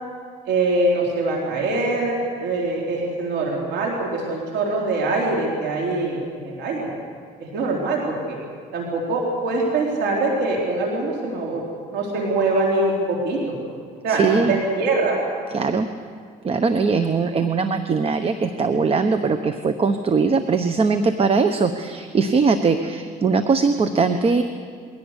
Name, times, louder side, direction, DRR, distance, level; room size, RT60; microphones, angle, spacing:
voice 1, 0.4-6.9 7.4-8.4 8.7-11.6 11.9-13.6 14.0-15.2, right 2 dB, 85° right, -2 dB, 3.8 m, -23 dB
voice 2, 14.1-14.6 15.5-15.9 16.4-24.4, right 4 dB, 35° right, 9 dB, 1.0 m, -20 dB
22.0 x 17.0 x 8.2 m, 2.1 s
cardioid pair, 110°, 17 cm